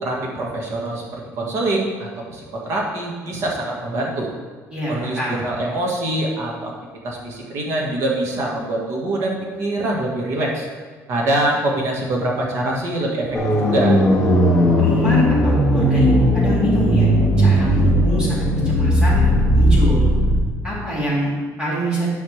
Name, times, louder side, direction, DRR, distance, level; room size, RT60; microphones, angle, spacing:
voice 1, 0.0-4.3 4.9-6.7 7.0-10.7 11.1-13.4 13.7-14.0, right 1 dB, 50° right, -1 dB, 1.6 m, -24 dB
voice 2, 4.7-5.4 14.8-17.1 17.4-20.0 20.6-22.1, right 1 dB, 15° right, -7 dB, 2.6 m, -25 dB
sound 1, 13.3-20.4, equal, 10° left, 1.4 m, -16 dB
11.0 x 5.6 x 3.3 m, 1.4 s
cardioid pair, 170°, 6 cm